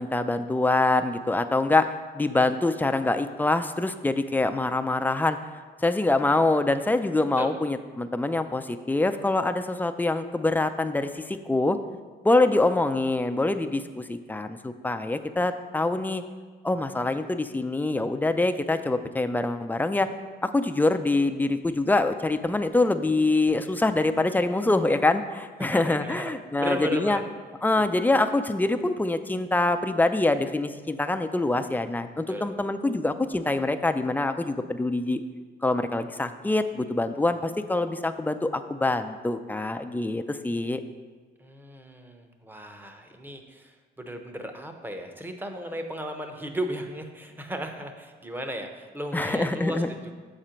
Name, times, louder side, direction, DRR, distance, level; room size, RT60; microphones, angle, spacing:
voice 1, 0.0-5.4 5.8-11.8 12.2-16.2 16.6-20.1 20.4-27.2 27.6-35.2 35.6-40.8 49.1-49.9, left 2 dB, 10° left, 8 dB, 0.4 m, -25 dB
voice 2, 25.6-27.3 27.8-28.1 32.3-32.5 41.4-50.1, equal, 10° right, 5 dB, 0.8 m, -35 dB
7.1 x 4.3 x 5.1 m, 1.4 s
cardioid pair, 90°, 20 cm